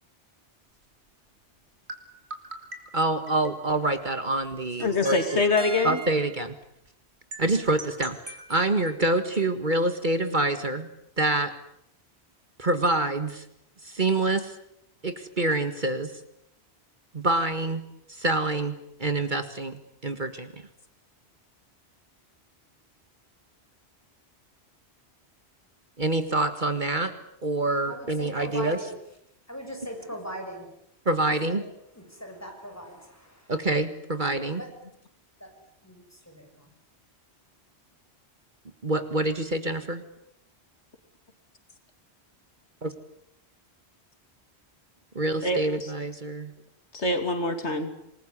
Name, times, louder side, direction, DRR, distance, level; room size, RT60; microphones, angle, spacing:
sound 1, 1.9-3.8 4.8-6.5 7.3-9.0, right 3 dB, 75° right, 3.3 m, -40 dB
voice 1, 2.9-5.4 5.8-6.5 7.4-10.9 11.2-11.5 12.6-13.5 13.8-14.6 15.0-16.1 17.1-17.8 18.1-20.5 26.0-27.1 27.4-28.8 31.1-31.6 33.5-34.6 38.8-40.0 42.8-42.9 45.2-46.5, right 2 dB, 45° right, 10 dB, 1.9 m, -26 dB
voice 2, 4.8-6.0 45.4-45.6 46.9-47.9, left 3 dB, 90° left, 8 dB, 2.9 m, -24 dB
voice 3, 27.9-29.0 29.5-30.7 31.5-31.6 31.9-33.5 34.6-34.7 35.4-35.5 35.8-36.7, equal, 15° left, 3 dB, 7.3 m, -40 dB
27.5 x 21.0 x 9.9 m, 0.76 s
omnidirectional pair, 1.1 m